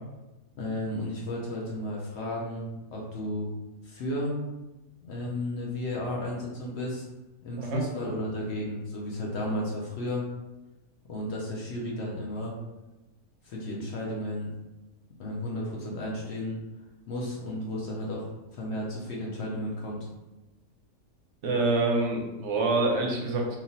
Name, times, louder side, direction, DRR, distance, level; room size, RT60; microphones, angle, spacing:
voice 1, 0.6-3.5 3.8-4.3 5.1-7.1 7.4-10.3 11.1-12.5 13.4-14.5 15.2-16.6 17.1-18.3 18.5-20.1, left 1 dB, 60° left, -3 dB, 0.7 m, -33 dB
voice 2, 21.4-23.6, right 2 dB, 60° right, 0 dB, 0.8 m, -26 dB
3.0 x 2.4 x 2.7 m, 1.1 s
omnidirectional pair, 1.6 m